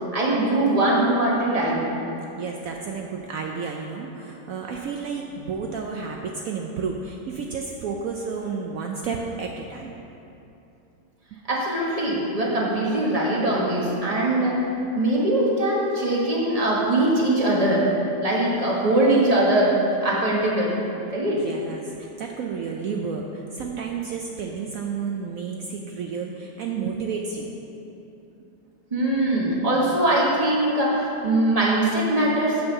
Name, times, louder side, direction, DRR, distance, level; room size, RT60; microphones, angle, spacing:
voice 1, 0.1-1.9 11.5-14.6 14.9-17.9 18.2-19.7 20.0-20.7 21.1-21.4 28.9-32.6, right 1 dB, 25° right, -5 dB, 1.2 m, -21 dB
voice 2, 2.4-9.9 21.3-27.6, right 5 dB, 75° right, 1 dB, 0.8 m, -31 dB
8.6 x 4.5 x 6.6 m, 2.9 s
omnidirectional pair, 1.9 m